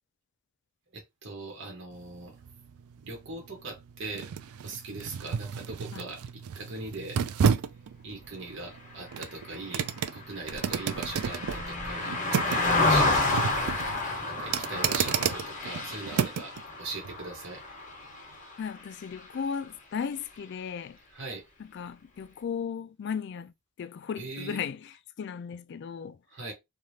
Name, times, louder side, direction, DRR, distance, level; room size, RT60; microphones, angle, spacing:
voice 1, 0.9-2.4 3.0-4.3 4.6-7.2 7.5-7.6 8.0-13.2 14.2-17.6 21.1-21.5 24.1-24.7 26.3-26.5, right 3 dB, 55° right, 1.1 m, -40 dB
sound 1, 1.9-16.6 17.0-17.2, right 7 dB, 85° right, 0.4 m, -32 dB
sound 2, 8.6-8.7 9.2-9.3 10.1-10.2 10.5-12.0 12.4-12.5 13.2-14.0 14.6-14.7 15.2-15.3, equal, 5° right, 0.8 m, -46 dB
Car passing by, 9.2-18.8 19.2-19.4, left 2 dB, 35° left, 0.9 m, -30 dB
voice 2, 18.6-21.0 21.6-24.8 25.2-26.2, left 6 dB, 50° left, 0.3 m, -36 dB
3.3 x 2.3 x 2.7 m
head